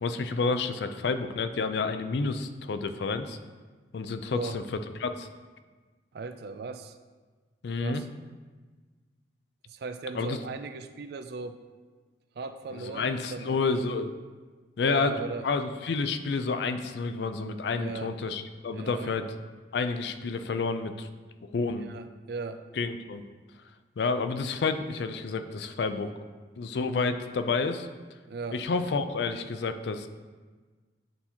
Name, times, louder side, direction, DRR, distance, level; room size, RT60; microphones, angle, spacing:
voice 1, 0.0-3.4 3.9-4.6 5.0-5.3 7.6-8.0 10.1-10.4 12.7-14.2 14.8-15.1 15.4-19.3 19.7-21.1 21.5-21.9 22.8-23.2 24.0-26.1 26.6-27.9 28.5-30.1, left 4 dB, 65° left, 9 dB, 0.4 m, -29 dB
voice 2, 4.3-4.6 6.1-7.0 7.8-8.1 9.7-11.6 12.4-14.1 14.8-15.5 17.8-18.2 18.7-19.3 21.6-22.6 28.3-28.6, right 4 dB, 60° right, 9 dB, 0.4 m, -38 dB
9.4 x 4.2 x 2.8 m, 1.4 s
head